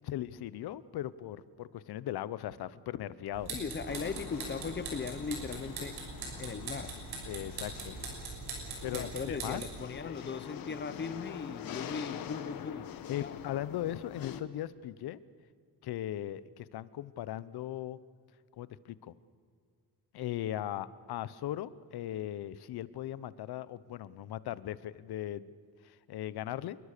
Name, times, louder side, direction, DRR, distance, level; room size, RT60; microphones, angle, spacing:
voice 1, 0.0-3.5 7.3-8.0 8.8-9.6 10.0-10.2 13.1-15.2 15.8-18.0 18.6-19.2 20.1-25.5 25.8-26.8, left 12 dB, 80° left, 17 dB, 0.9 m, -38 dB
sound 1, 3.3-9.8, right 4 dB, 75° right, 6.9 m, -42 dB
voice 2, 3.5-6.0 6.4-6.9 8.9-12.9 13.2-13.4, left 5 dB, 30° left, 13 dB, 0.9 m, -38 dB
sound 2, 3.9-14.4, left 9 dB, 65° left, 1.3 m, -45 dB
27.0 x 22.0 x 6.8 m, 2.1 s
wide cardioid pair, 170°, 37 cm